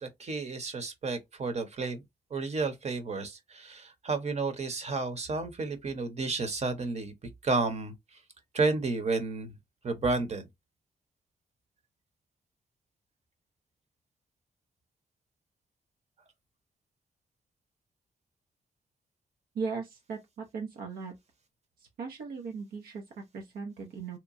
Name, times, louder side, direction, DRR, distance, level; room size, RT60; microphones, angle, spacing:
voice 1, 0.0-2.0 2.3-7.1 7.4-8.2 8.5-9.5 9.8-10.5, right 3 dB, 45° right, 0.8 m, -31 dB
voice 2, 19.5-21.1 21.8-24.2, right 5 dB, 90° right, 0.6 m, -38 dB
2.8 x 2.2 x 2.5 m
cardioid pair, 70°, 15 cm